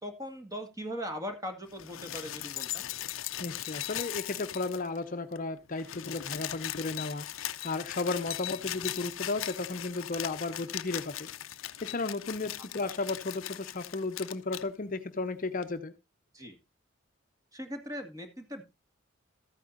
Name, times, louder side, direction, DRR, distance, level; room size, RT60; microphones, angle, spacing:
voice 1, 0.0-2.9 12.8-12.9 16.3-16.6 17.5-18.6, equal, 15° right, 6 dB, 1.9 m, -39 dB
sound 1, 1.7-5.0 5.3-5.4 5.6-14.7 15.6-15.7, left 13 dB, 80° left, 0.6 m, -39 dB
voice 2, 3.4-11.3 11.8-15.9, left 3 dB, 40° left, 9 dB, 0.7 m, -34 dB
14.0 x 9.1 x 2.6 m, 0.24 s
head